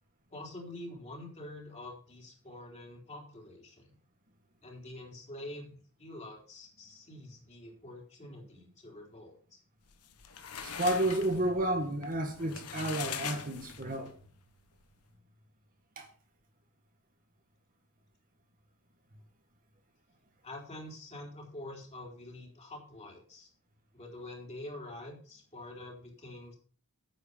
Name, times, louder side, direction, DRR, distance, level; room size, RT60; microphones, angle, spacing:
voice 1, 0.3-3.9 4.6-5.7 6.0-9.6 20.4-23.5 23.9-26.6, left 1 dB, 30° left, 3.9 m, -46 dB
sound 1, 9.9-14.1, left 8 dB, 90° left, 1.1 m, -41 dB
voice 2, 10.6-14.1 16.0-16.1, right 1 dB, 40° right, 1.7 m, -31 dB
9.5 x 8.0 x 5.5 m
head